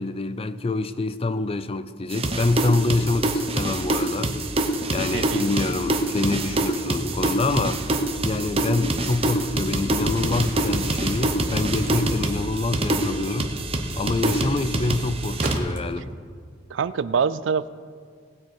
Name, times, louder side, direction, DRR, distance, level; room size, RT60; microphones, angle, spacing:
voice 1, 0.0-4.4 4.9-13.5 14.0-16.1, left 3 dB, 30° left, 0.4 m, -26 dB
sound 1, 2.1-15.6, right 2 dB, 30° right, 1.0 m, -25 dB
voice 2, 5.1-5.4 16.0-16.1 16.7-17.7, right 6 dB, 70° right, 0.4 m, -25 dB
Crumpling crinkling, 10.2-16.3, right 2 dB, 50° right, 1.5 m, -40 dB
18.5 x 7.5 x 4.7 m
head